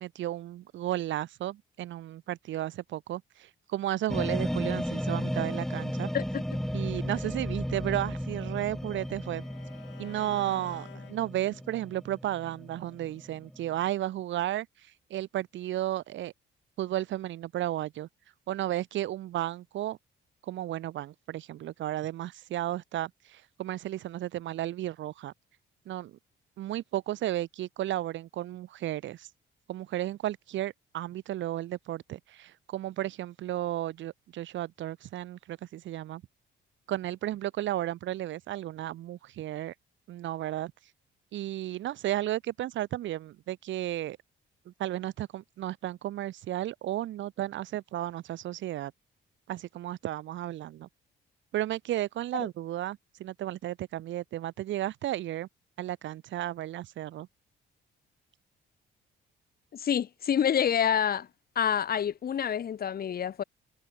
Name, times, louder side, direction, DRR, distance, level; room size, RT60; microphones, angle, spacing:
voice 1, 0.0-6.1 6.7-9.4 10.0-14.7 15.1-16.3 16.8-18.1 18.5-20.0 20.4-25.3 25.9-26.2 26.6-29.3 29.7-36.2 36.9-39.7 40.1-40.7 41.3-44.2 44.7-48.9 49.5-50.9 51.5-55.5 55.8-57.3, right 13 dB, 70° right, 0.8 m, -33 dB
sound 1, 4.1-13.8, equal, ahead, 0.9 m, -34 dB
Bowed string instrument, 7.7-11.8, left 11 dB, 70° left, 2.7 m, -53 dB
voice 2, 59.7-61.3 61.5-63.4, left 8 dB, 50° left, 1.1 m, -27 dB
cardioid pair, 90°, 20 cm